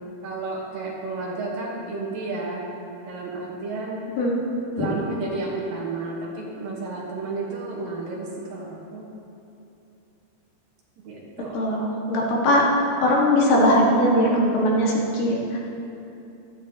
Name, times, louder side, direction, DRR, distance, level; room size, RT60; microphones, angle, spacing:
voice 1, 0.2-2.7 3.1-4.1 4.8-9.1 11.0-11.8, right 3 dB, 65° right, -3 dB, 2.8 m, -32 dB
voice 2, 11.5-12.7 13.0-15.6, equal, 75° left, -4 dB, 3.8 m, -20 dB
16.0 x 13.5 x 3.0 m, 2.8 s
omnidirectional pair, 4.7 m